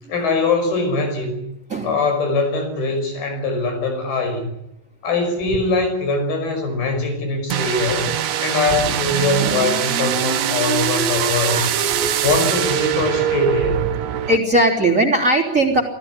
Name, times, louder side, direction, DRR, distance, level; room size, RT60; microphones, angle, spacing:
voice 1, 0.1-1.4 1.8-4.5 5.0-8.1 8.4-11.7 12.2-13.9, left 3 dB, 80° left, 6 dB, 7.5 m, -22 dB
voice 2, 1.7-2.0 7.9-8.2 8.8-9.9 11.4-12.4 13.9-15.8, right 1 dB, 20° right, 1 dB, 3.2 m, -21 dB
sound 1, 7.5-14.4, right 10 dB, 60° right, 2.1 m, -22 dB
26.5 x 16.0 x 9.7 m, 0.85 s
omnidirectional pair, 4.3 m